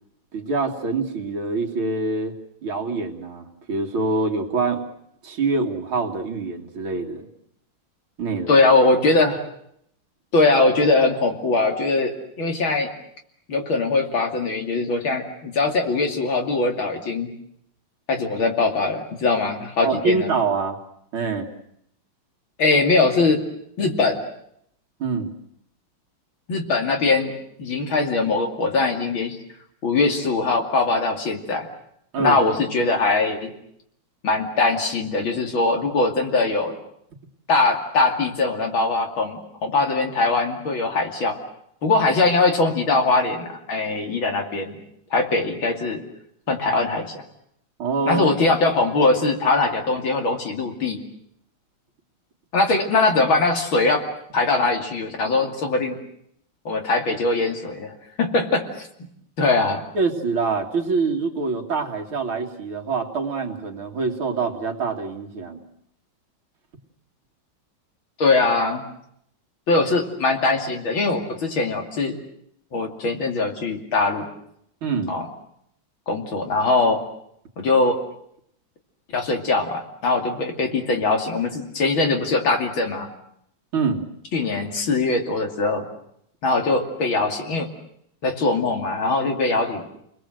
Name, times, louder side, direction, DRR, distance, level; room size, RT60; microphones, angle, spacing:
voice 1, 0.3-2.3 2.6-4.8 5.2-7.3 8.2-8.6 19.8-20.8 21.1-21.5 25.0-25.3 32.1-32.4 47.8-48.3 59.9-65.6 74.8-75.1 83.7-84.0, right 4 dB, 80° right, 1 dB, 3.2 m, -25 dB
voice 2, 8.5-9.4 10.3-12.9 13.5-17.3 18.1-20.3 22.6-23.4 23.8-24.2 26.5-27.3 27.6-29.4 29.8-31.7 32.2-33.5 34.2-36.7 37.5-41.4 41.8-44.8 45.1-46.0 46.5-47.2 48.1-51.0 52.5-54.0 54.3-56.0 56.6-58.9 59.4-59.8 68.2-68.8 69.7-72.2 72.7-74.3 75.1-75.2 76.1-77.0 77.6-78.0 79.1-83.1 84.3-85.8 86.4-87.7 88.2-89.8, left 3 dB, 70° left, 3 dB, 3.4 m, -21 dB
30.0 x 21.0 x 7.8 m, 0.73 s
omnidirectional pair, 2.3 m